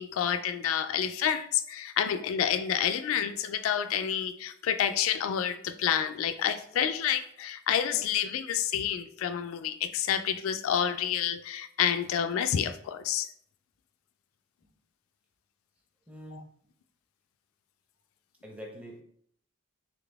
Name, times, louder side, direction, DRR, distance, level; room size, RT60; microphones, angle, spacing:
voice 1, 0.0-13.3 16.3-16.4, left 9 dB, 90° left, 9 dB, 0.3 m, -29 dB
voice 2, 16.1-16.5 18.4-19.0, equal, 5° right, -1 dB, 0.7 m, -44 dB
3.9 x 3.4 x 3.4 m, 0.66 s
head